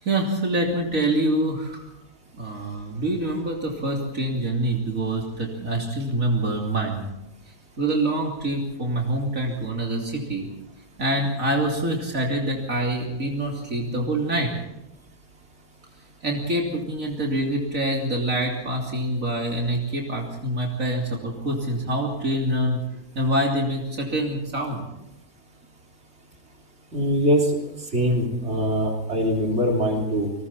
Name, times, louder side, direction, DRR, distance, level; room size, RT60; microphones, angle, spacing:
voice 1, 0.0-1.9 2.3-7.1 7.8-10.5 11.0-14.5 16.2-22.8 23.2-24.8, right 1 dB, 70° right, -1 dB, 3.5 m, -25 dB
voice 2, 26.9-27.5 27.9-30.3, equal, 50° right, 0 dB, 3.8 m, -22 dB
29.0 x 21.0 x 4.3 m, 0.93 s
omnidirectional pair, 1.4 m